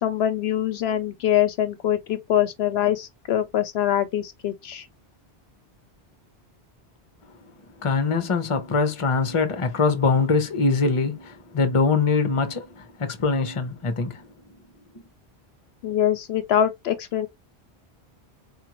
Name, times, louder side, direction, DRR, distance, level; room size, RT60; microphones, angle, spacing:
voice 1, 0.0-4.9 15.8-17.3, left 10 dB, 70° left, 0.8 m, -24 dB
voice 2, 7.8-14.2, left 4 dB, 35° left, 0.7 m, -23 dB
4.3 x 2.5 x 2.9 m
omnidirectional pair, 1.1 m